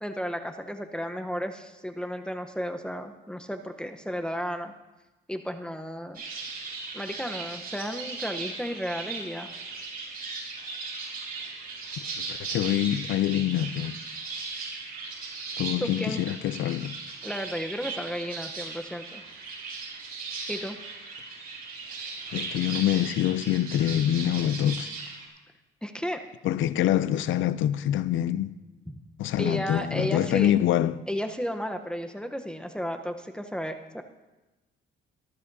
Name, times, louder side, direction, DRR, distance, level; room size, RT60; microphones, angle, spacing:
voice 1, 0.0-4.7 5.3-6.2 6.9-9.5 15.8-16.2 17.2-19.2 20.5-20.8 25.8-26.2 29.4-30.5 31.1-34.0, equal, 5° left, 0.9 m, -33 dB
sound 1, 6.1-25.3, right 4 dB, 50° right, 5.0 m, -37 dB
voice 2, 12.2-14.0 15.6-16.9 22.3-24.9 26.4-28.5 29.2-30.9, left 12 dB, 75° left, 0.5 m, -25 dB
18.0 x 13.5 x 2.8 m
cardioid pair, 90°, 20 cm